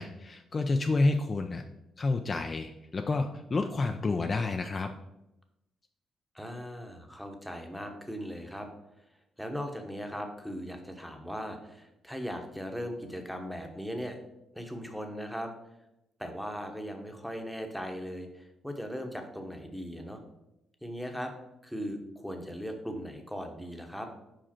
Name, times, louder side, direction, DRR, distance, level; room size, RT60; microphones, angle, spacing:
voice 1, 0.0-1.6 2.0-4.9, left 3 dB, 35° left, 5 dB, 0.4 m, -29 dB
voice 2, 6.3-8.7 9.4-14.2 14.5-15.5 16.2-20.2 20.8-21.3 21.6-24.1, equal, ahead, 4 dB, 1.0 m, -38 dB
5.0 x 5.0 x 4.3 m, 0.89 s
cardioid pair, 90°, 0 cm